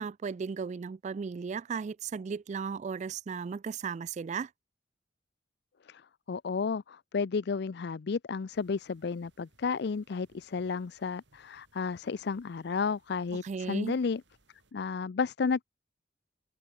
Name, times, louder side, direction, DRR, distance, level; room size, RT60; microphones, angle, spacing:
voice 1, 0.0-4.5 13.4-14.0, right 5 dB, 40° right, 0.3 m, -35 dB
voice 2, 6.3-14.2 14.7-15.6, left 5 dB, 65° left, 0.5 m, -32 dB
sound 1, 8.5-14.7, right 2 dB, 80° right, 5.8 m, -68 dB
head